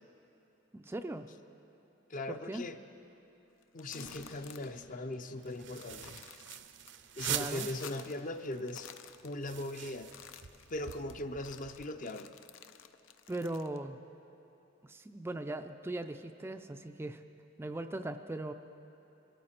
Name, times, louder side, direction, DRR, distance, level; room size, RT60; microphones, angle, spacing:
voice 1, 0.7-1.3 2.3-2.6 7.2-7.7 13.3-14.0 14.8-17.2 17.6-18.5, right 2 dB, 10° right, 7 dB, 0.3 m, -39 dB
voice 2, 2.1-2.8 3.7-6.2 7.2-8.9 9.2-10.1 10.7-12.3, left 1 dB, 45° left, 8 dB, 0.6 m, -39 dB
sound 1, 3.6-4.8 5.1-5.2 5.6-6.9 7.2-8.3 8.6-9.7 10.0-13.8, left 8 dB, 85° left, 0.6 m, -53 dB
sound 2, 3.8-9.4 9.7-9.9 10.4-10.5 11.1-11.2 11.7-11.8, left 2 dB, 65° left, 3.8 m, -59 dB
sound 3, 5.4-8.2 8.5-8.6 8.9-12.0, right 10 dB, 65° right, 0.6 m, -42 dB
23.0 x 13.5 x 4.4 m, 2.9 s
head